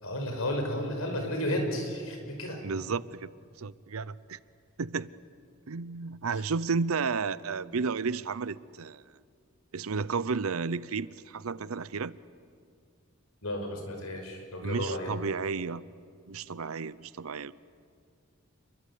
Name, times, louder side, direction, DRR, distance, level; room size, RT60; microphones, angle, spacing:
voice 1, 0.0-2.6 13.4-15.1, left 1 dB, 75° left, 4 dB, 5.4 m, -32 dB
voice 2, 2.6-3.3 3.6-4.4 4.8-5.1 5.7-9.0 9.7-12.1 14.6-15.8 16.3-17.5, right 5 dB, 75° right, 19 dB, 0.7 m, -32 dB
29.5 x 22.5 x 8.5 m, 2.3 s
head